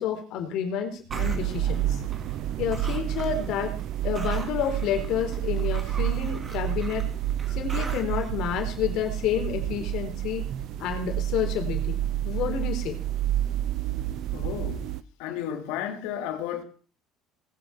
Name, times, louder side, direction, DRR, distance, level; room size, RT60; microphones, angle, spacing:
voice 1, 0.0-2.0 2.6-3.7 4.0-7.1 7.5-10.5 10.8-13.0, left 8 dB, 65° left, 4.2 m, -29 dB
sound 1, 1.1-2.5 2.7-3.5 3.8-8.3, right 4 dB, 25° right, 2.5 m, -42 dB
sound 2, 1.1-15.0, right 12 dB, 60° right, 0.8 m, -29 dB
voice 2, 14.3-14.9 15.2-16.6, left 10 dB, 85° left, 2.8 m, -33 dB
20.0 x 7.9 x 6.1 m
cardioid pair, 130°, 0 cm